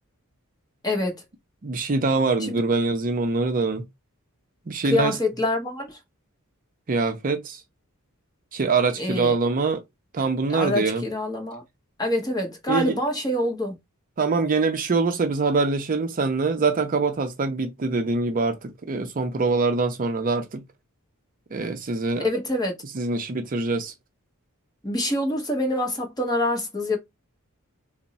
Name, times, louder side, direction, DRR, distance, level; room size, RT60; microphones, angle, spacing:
voice 1, 0.8-1.2 2.4-2.5 4.8-6.0 9.0-9.3 10.5-11.6 12.0-13.7 22.2-22.7 24.8-27.0, left 1 dB, 20° left, 1.0 m, -25 dB
voice 2, 1.6-3.9 4.7-5.2 6.9-7.6 8.5-9.8 10.1-11.0 12.7-13.0 14.2-20.6 21.5-22.2 22.9-23.9, right 3 dB, 40° right, 0.5 m, -24 dB
3.5 x 2.0 x 4.0 m
head